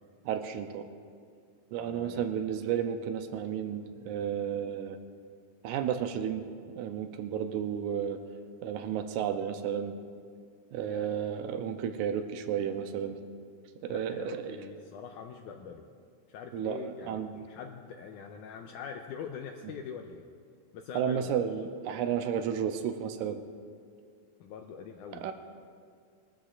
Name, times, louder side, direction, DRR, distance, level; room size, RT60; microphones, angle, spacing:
voice 1, 0.2-0.8 1.7-5.0 5.6-6.4 6.7-8.2 8.6-10.0 10.7-13.2 13.8-14.6 16.5-17.3 20.9-23.4 25.1-25.3, right 8 dB, 85° right, 7 dB, 1.8 m, -32 dB
voice 2, 1.7-2.2 10.8-11.2 13.9-15.9 16.3-20.2 20.7-21.3 24.4-25.3, left 7 dB, 85° left, 3 dB, 1.8 m, -43 dB
22.0 x 13.0 x 2.5 m, 2.1 s
omnidirectional pair, 4.1 m